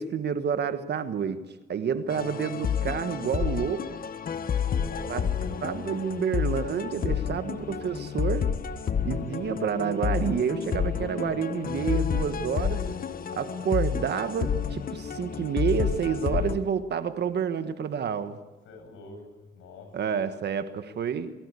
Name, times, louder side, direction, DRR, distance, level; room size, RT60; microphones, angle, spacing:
voice 1, 0.0-1.4 1.7-3.8 5.1-5.2 5.6-8.5 9.0-12.8 13.4-18.4 19.9-21.3, right 7 dB, 60° right, 1.4 m, -29 dB
sound 1, 2.1-16.6, left 7 dB, 45° left, 1.3 m, -30 dB
voice 2, 4.4-5.7 18.6-19.2 19.5-19.9, left 3 dB, 80° left, 7.7 m, -44 dB
22.5 x 16.5 x 8.4 m
cardioid pair, 90°, 20 cm